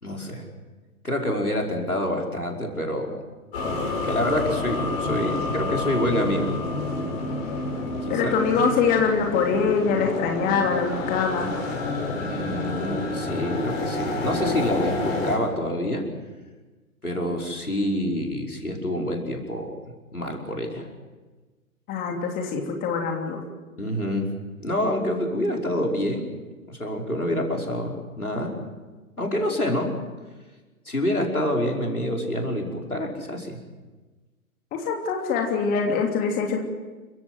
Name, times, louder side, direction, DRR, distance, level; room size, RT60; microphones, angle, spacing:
voice 1, 0.0-0.5 1.0-3.2 4.0-6.5 8.0-8.3 12.1-16.0 17.0-19.7 20.1-20.9 23.8-24.3 24.6-26.3 26.7-28.5 29.2-29.9 30.9-33.6, left 1 dB, 90° left, 1 dB, 5.5 m, -27 dB
sound 1, 3.5-15.4, left 2 dB, 45° left, 7.0 m, -29 dB
voice 2, 8.1-11.5 21.9-23.4 34.7-36.6, left 5 dB, 20° left, 2 dB, 3.0 m, -24 dB
29.5 x 15.5 x 8.0 m, 1.3 s
figure-of-eight pair, 125°, 43 cm